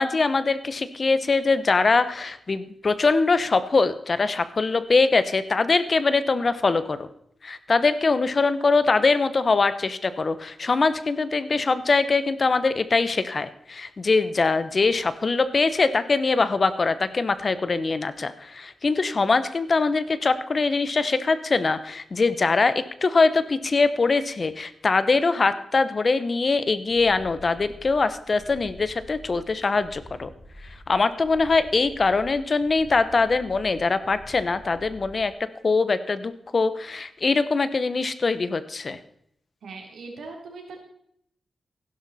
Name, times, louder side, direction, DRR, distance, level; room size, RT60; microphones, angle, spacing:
voice 1, 0.0-7.1 7.4-30.3 30.9-35.3 35.6-39.0, left 4 dB, 45° left, 13 dB, 0.9 m, -22 dB
sound 1, 26.9-35.3, equal, 5° right, 6.3 m, -46 dB
voice 2, 39.6-40.8, right 3 dB, 85° right, 2 dB, 3.4 m, -40 dB
15.5 x 11.5 x 4.2 m, 0.70 s
wide cardioid pair, 95°, 0 cm